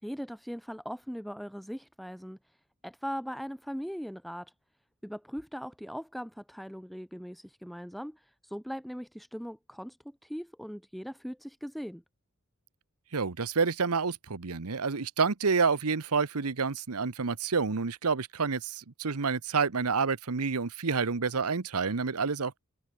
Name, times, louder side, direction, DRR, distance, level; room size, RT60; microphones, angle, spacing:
voice 1, 0.0-2.6 2.8-4.5 5.0-12.0, equal, ahead, 4.3 m, -40 dB
voice 2, 13.1-22.6, right 5 dB, 75° right, 1.0 m, -29 dB
head